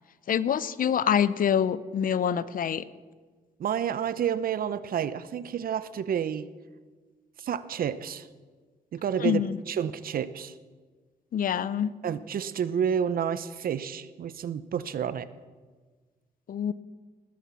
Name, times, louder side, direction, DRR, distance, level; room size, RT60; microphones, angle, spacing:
voice 1, 0.3-2.8 9.2-9.6 11.3-11.9 16.5-16.7, left 8 dB, 60° left, 17 dB, 0.6 m, -25 dB
voice 2, 3.6-6.5 7.4-8.3 8.9-10.5 12.0-15.3, right 8 dB, 65° right, 15 dB, 0.7 m, -30 dB
19.5 x 10.0 x 5.8 m, 1.4 s
cardioid pair, 90°, 16 cm